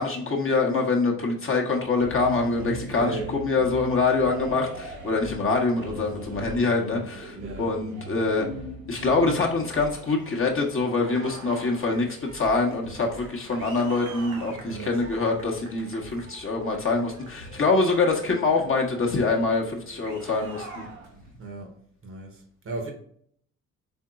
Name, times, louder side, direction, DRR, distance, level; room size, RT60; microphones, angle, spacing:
voice 1, 0.0-8.5 8.9-12.1 12.3-20.8, left 3 dB, 30° left, 1.0 m, -25 dB
sound 1, 1.9-21.4, right 1 dB, 80° right, 0.9 m, -41 dB
voice 2, 2.7-3.3 7.4-7.7 14.6-15.0 21.4-21.7 22.0-22.9, right 3 dB, 30° right, 0.9 m, -36 dB
4.4 x 3.7 x 2.4 m
figure-of-eight pair, 45°, 40 cm